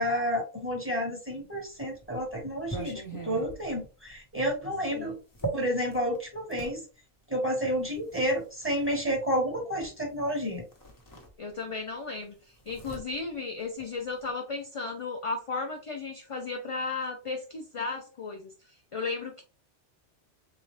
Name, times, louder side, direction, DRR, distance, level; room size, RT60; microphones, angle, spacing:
voice 1, 0.0-5.1 5.5-6.8 7.3-10.6, equal, 10° right, 0 dB, 1.4 m, -30 dB
sound 1, 1.4-6.8 7.7-9.0 10.2-10.4 10.7-11.8 12.1-14.3, right 3 dB, 20° left, 0.9 m, -41 dB
voice 2, 11.4-19.4, left 4 dB, 45° left, 3 dB, 0.4 m, -35 dB
3.8 x 3.0 x 3.2 m, 0.33 s
omnidirectional pair, 1.2 m